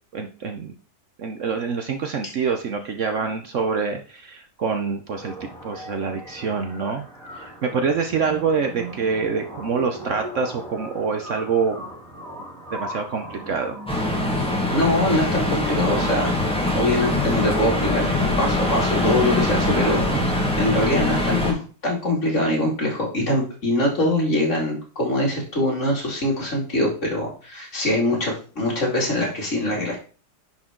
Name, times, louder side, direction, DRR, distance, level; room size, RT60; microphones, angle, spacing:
voice 1, 0.1-0.7 1.2-7.1 7.3-11.9 12.7-13.8 20.0-20.3, right 5 dB, 60° right, 5 dB, 1.0 m, -26 dB
sound 1, 5.2-19.1, right 1 dB, 15° right, 2.8 m, -39 dB
sound 2, 13.9-21.5, left 1 dB, 5° left, 1.6 m, -23 dB
voice 2, 14.7-16.3 16.7-18.1 18.4-30.0, left 1 dB, 45° left, -2 dB, 3.0 m, -23 dB
10.5 x 4.5 x 3.8 m, 0.39 s
omnidirectional pair, 1.7 m